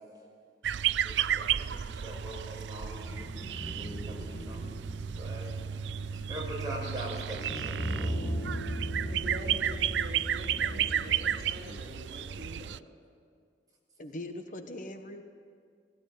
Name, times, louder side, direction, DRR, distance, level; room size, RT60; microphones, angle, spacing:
sound 1, 0.6-12.8, right 9 dB, 85° right, 0.4 m, -33 dB
voice 1, 1.0-3.3 3.7-4.7 5.1-5.5 6.1-8.2, right 1 dB, 20° right, -3 dB, 5.8 m, -42 dB
sound 2, 3.0-11.4, equal, 25° left, 2.7 m, -38 dB
voice 2, 9.1-12.7, equal, 55° right, -2 dB, 3.5 m, -44 dB
voice 3, 14.0-15.2, left 1 dB, 50° left, 6 dB, 1.2 m, -40 dB
17.5 x 17.0 x 9.3 m, 2.2 s
head